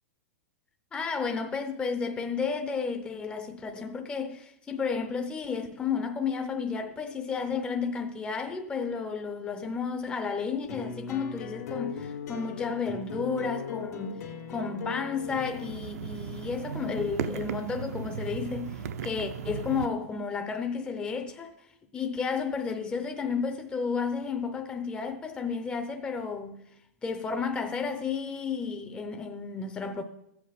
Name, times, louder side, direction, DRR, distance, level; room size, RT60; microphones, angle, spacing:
voice 1, 0.9-21.7 21.9-26.6 27.0-30.0, left 5 dB, 10° left, 0.6 m, -32 dB
sound 1, 10.7-15.7, left 5 dB, 75° left, 1.9 m, -38 dB
sound 2, 15.2-19.9, right 7 dB, 70° right, 0.7 m, -36 dB
13.5 x 7.9 x 5.1 m
hypercardioid pair, 145°, 9 cm